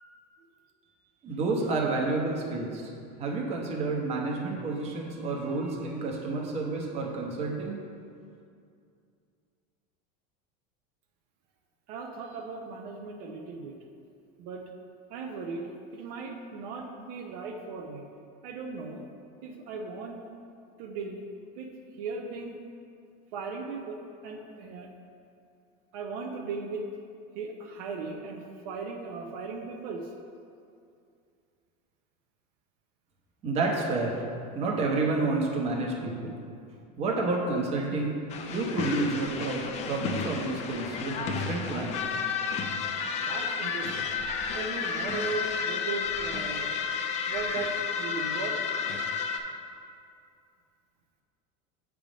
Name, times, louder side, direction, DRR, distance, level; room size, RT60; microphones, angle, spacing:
voice 1, 1.2-7.8 33.4-34.2 34.5-36.4 37.0-38.2 38.5-42.2, right 3 dB, 30° right, -1 dB, 0.9 m, -30 dB
voice 2, 11.9-13.7 14.4-14.6 15.1-18.0 18.4-19.0 19.4-20.2 20.8-21.2 21.6-21.7 22.0-22.6 23.3-24.0 24.2-24.9 25.9-26.8 27.3-30.1 43.2-44.1 44.5-46.7 47.3-48.6, right 4 dB, 70° right, 2 dB, 0.7 m, -37 dB
sound 1, 38.3-49.4, left 6 dB, 35° left, 0.4 m, -32 dB
7.4 x 3.6 x 5.0 m, 2.4 s
cardioid pair, 150°, 20 cm